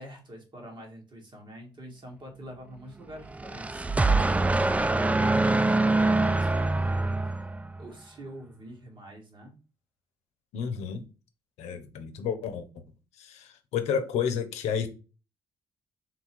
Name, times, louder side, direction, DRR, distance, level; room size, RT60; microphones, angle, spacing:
voice 1, 0.0-3.8 4.1-7.5 7.8-9.6, equal, 45° right, 1.7 m, -45 dB
sound 1, 3.3-7.9, right 2 dB, 10° right, 0.3 m, -24 dB
voice 2, 10.5-11.1 11.6-12.7 13.2-14.9, left 7 dB, 85° left, 0.7 m, -31 dB
3.8 x 2.4 x 4.5 m
supercardioid pair, 65°, 11 cm